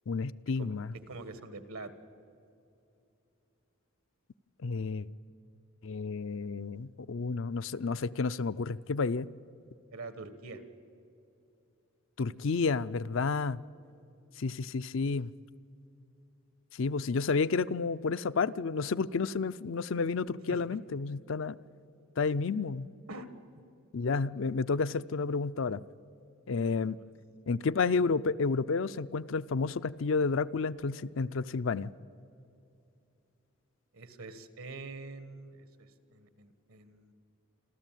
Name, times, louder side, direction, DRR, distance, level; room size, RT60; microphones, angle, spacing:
voice 1, 0.1-0.9 4.6-5.1 5.8-9.3 12.2-13.6 14.4-15.3 16.7-21.6 22.2-22.9 23.9-25.8 26.5-27.0 27.5-31.9, left 4 dB, 60° left, 14 dB, 0.5 m, -31 dB
voice 2, 1.1-1.9 9.9-10.6 20.5-20.6 23.1-23.3 26.7-26.9 33.9-37.1, right 3 dB, 75° right, 11 dB, 1.7 m, -45 dB
27.5 x 13.5 x 9.2 m, 2.7 s
head